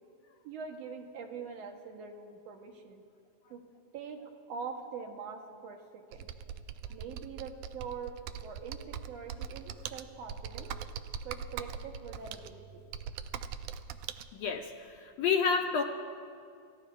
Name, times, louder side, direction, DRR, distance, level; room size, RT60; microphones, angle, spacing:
voice 1, 0.4-3.0 3.5-3.6 3.9-6.3 6.9-8.2 8.4-10.7 11.2-12.8, right 6 dB, 70° right, 3 dB, 1.8 m, -43 dB
Computer keyboard, 6.1-14.3, right 8 dB, 90° right, 1.4 m, -42 dB
voice 2, 14.3-14.7 15.0-15.8, left 6 dB, 75° left, 3 dB, 1.6 m, -28 dB
29.0 x 15.0 x 2.3 m, 2.4 s
omnidirectional pair, 3.4 m